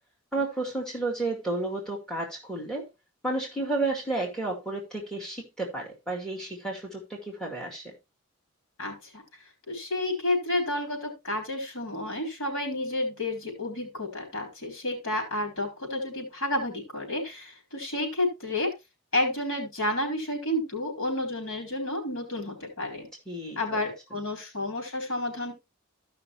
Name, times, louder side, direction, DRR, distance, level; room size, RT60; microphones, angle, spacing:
voice 1, 0.3-2.9 3.2-8.0 23.3-23.8, right 2 dB, 5° left, 2.1 m, -32 dB
voice 2, 8.8-9.2 9.7-18.7 19.1-23.1 23.6-25.5, left 1 dB, 70° left, 4.0 m, -30 dB
14.5 x 5.7 x 3.0 m
head